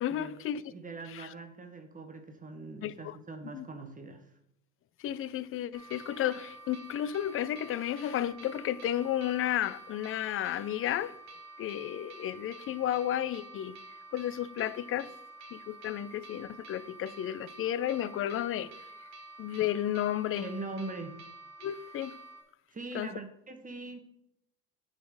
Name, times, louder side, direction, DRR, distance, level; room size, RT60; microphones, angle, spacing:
voice 1, 0.0-0.6 1.1-1.3 2.8-3.2 3.5-3.7 5.0-11.2 11.6-13.8 14.1-15.1 15.5-18.7 19.4-20.5 21.6-22.2 22.9-23.1, left 11 dB, 35° left, 0.5 m, -32 dB
voice 2, 0.7-4.3 20.4-21.2 22.7-24.0, right 3 dB, 20° right, 1.2 m, -42 dB
sound 1, 5.7-22.4, right 2 dB, 45° right, 1.8 m, -49 dB
9.2 x 4.0 x 4.8 m
hypercardioid pair, 75°, 37 cm